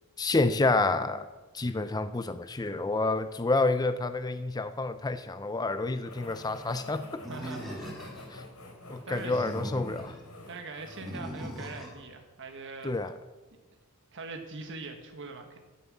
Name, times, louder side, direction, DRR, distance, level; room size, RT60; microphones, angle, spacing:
voice 1, 0.2-1.3 1.5-7.2 8.3-8.4 8.9-10.1 12.8-13.1, left 3 dB, 20° left, 11 dB, 0.5 m, -29 dB
sound 1, 6.0-11.9, left 2 dB, 80° left, 4.6 m, -48 dB
Animal, 7.2-8.4 9.1-10.2 11.0-12.0, equal, ahead, 2.8 m, -40 dB
voice 2, 7.3-8.1 9.0-9.5 10.5-12.9 14.1-15.6, right 3 dB, 55° right, 5 dB, 1.3 m, -42 dB
14.5 x 7.4 x 7.2 m, 1.2 s
head